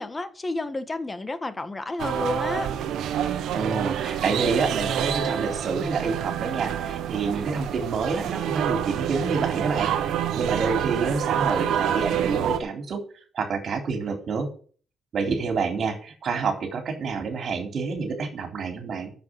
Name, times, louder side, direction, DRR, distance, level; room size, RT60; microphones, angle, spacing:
voice 1, 0.0-2.7, left 2 dB, 20° left, 1.6 m, -30 dB
sound 1, 2.0-12.6, right 9 dB, 80° right, 1.4 m, -27 dB
voice 2, 3.5-9.9 10.4-13.0 13.3-14.5 15.1-19.1, right 4 dB, 55° right, 3.7 m, -28 dB
9.5 x 7.6 x 7.8 m
cardioid pair, 90°, 0 cm